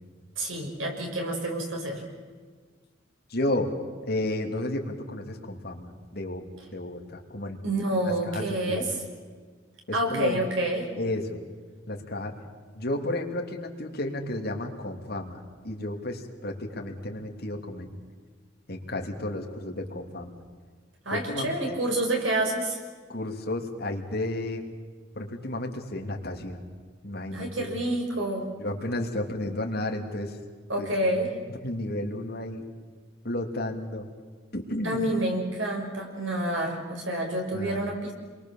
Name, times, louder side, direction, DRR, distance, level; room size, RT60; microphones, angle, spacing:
voice 1, 0.4-2.0 7.6-8.9 9.9-10.9 21.1-22.8 27.3-28.5 30.7-31.3 34.8-38.1, right 1 dB, 90° right, 2 dB, 5.7 m, -28 dB
voice 2, 3.3-3.7 4.0-6.5 6.7-7.6 8.0-8.9 9.9-10.5 11.0-11.4 11.9-12.3 12.7-17.9 18.7-20.4 21.1-21.8 23.1-24.7 25.1-26.6 27.0-27.7 28.6-30.4 30.8-30.9 31.5-32.6 33.2-34.1 34.5-35.0 37.5-37.8, left 1 dB, 55° left, 2 dB, 2.9 m, -32 dB
28.0 x 23.0 x 7.3 m, 1.6 s
head